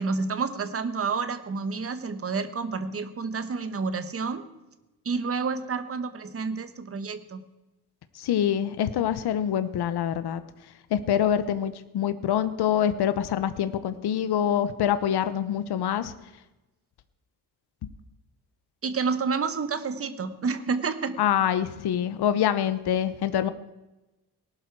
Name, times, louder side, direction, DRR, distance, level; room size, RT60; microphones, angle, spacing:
voice 1, 0.0-4.4 5.0-7.4 18.8-21.2, right 4 dB, 35° right, 11 dB, 1.2 m, -29 dB
voice 2, 8.1-10.4 10.9-16.1 21.2-23.5, left 9 dB, 70° left, 12 dB, 0.9 m, -25 dB
18.5 x 12.0 x 4.7 m, 1.0 s
wide cardioid pair, 165°, 40 cm